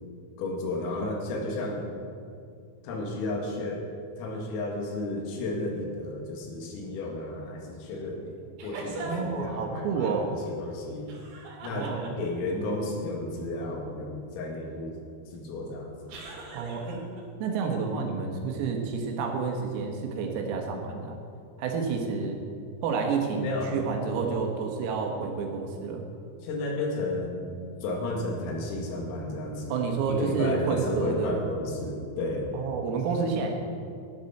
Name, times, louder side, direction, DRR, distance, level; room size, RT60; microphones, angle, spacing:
voice 1, 0.4-1.9 2.8-3.8 4.2-11.1 11.6-14.9 15.3-15.9 23.4-23.8 26.4-27.5 27.8-32.5, left 2 dB, 80° left, 0 dB, 4.7 m, -33 dB
sound 1, 8.6-9.4 11.1-12.5 16.1-17.2, right 2 dB, 65° right, 4.1 m, -40 dB
voice 2, 9.1-10.3 11.7-12.2 16.5-17.0 17.4-21.2 21.6-22.5 22.8-26.0 29.7-31.5 32.5-33.6, right 5 dB, 90° right, 2 dB, 4.4 m, -29 dB
18.0 x 12.5 x 4.4 m, 2.4 s
omnidirectional pair, 5.9 m